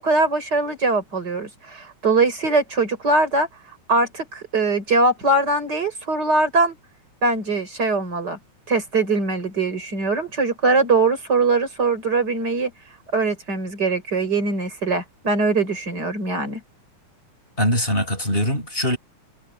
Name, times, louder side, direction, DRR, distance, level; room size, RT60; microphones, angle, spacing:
voice 1, 0.0-3.5 3.9-6.8 7.2-8.4 8.7-12.7 13.1-16.6, right 3 dB, 35° right, 5.1 m, -21 dB
voice 2, 17.6-19.0, equal, 15° left, 6.1 m, -22 dB
omnidirectional pair, 3.3 m